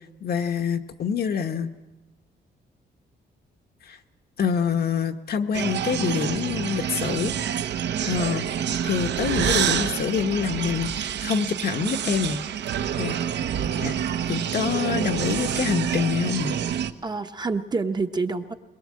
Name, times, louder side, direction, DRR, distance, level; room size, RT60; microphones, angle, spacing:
voice 1, 0.2-1.7 3.9-4.0 4.4-7.3 8.0-8.5 8.8-12.4 13.0-13.2 13.8-14.0 14.3-16.5, left 7 dB, 55° left, 7 dB, 1.2 m, -26 dB
sound 1, 5.5-16.9, right 9 dB, 70° right, 1.0 m, -27 dB
voice 2, 17.0-18.5, right 4 dB, 20° right, 7 dB, 0.9 m, -28 dB
22.0 x 21.5 x 7.6 m, 1.1 s
wide cardioid pair, 155°, 18 cm